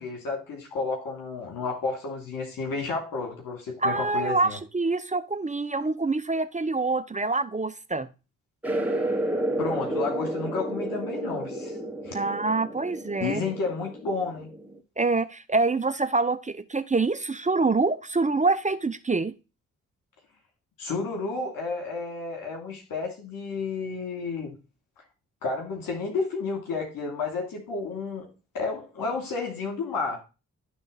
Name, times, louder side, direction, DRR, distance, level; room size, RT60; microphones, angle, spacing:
voice 1, 0.0-4.6 9.6-11.7 12.0-12.2 13.2-14.5 20.8-24.5 25.4-28.2 28.5-30.2, left 4 dB, 75° left, 0 dB, 2.9 m, -31 dB
voice 2, 3.8-8.1 12.1-13.4 15.0-19.3, right 3 dB, 20° right, 11 dB, 0.7 m, -26 dB
sound 1, 8.6-14.8, right 1 dB, 5° right, 1.6 m, -31 dB
11.0 x 3.7 x 4.0 m, 0.30 s
supercardioid pair, 45°, 34 cm